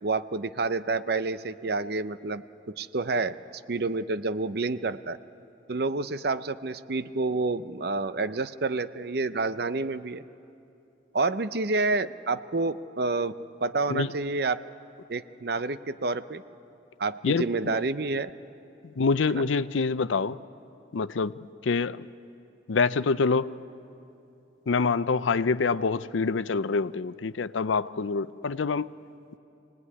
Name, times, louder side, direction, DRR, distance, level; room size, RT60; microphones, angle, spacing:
voice 1, 0.0-3.4 3.7-5.2 5.7-10.2 11.1-13.4 13.6-14.6 15.1-16.4 17.0-18.3 19.3-19.4, right 3 dB, 55° right, 12 dB, 0.6 m, -29 dB
voice 2, 17.2-17.8 19.0-20.4 20.9-21.3 21.6-22.1 22.7-23.5 24.7-28.9, left 4 dB, 85° left, 15 dB, 0.5 m, -26 dB
25.5 x 18.0 x 9.7 m, 2.8 s
head